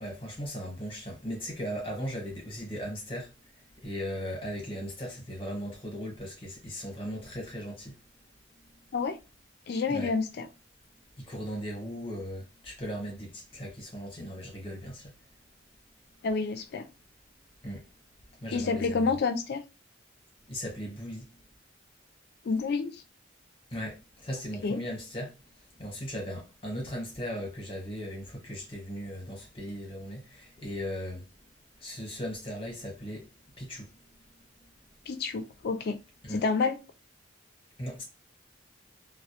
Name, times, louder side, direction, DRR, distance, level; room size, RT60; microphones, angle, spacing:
voice 1, 0.0-8.0 8.5-8.8 9.9-10.2 11.2-15.2 17.6-17.9 18.3-19.2 20.5-21.4 23.7-31.4 31.8-34.0 34.4-34.7 36.2-36.4 37.8-38.0, equal, 30° left, 1.0 m, -38 dB
voice 2, 9.7-10.5 16.2-16.9 18.5-19.6 22.4-23.0 24.6-24.8 35.1-36.0 36.3-36.8, left 4 dB, 55° left, 0.3 m, -29 dB
2.1 x 2.1 x 2.8 m
head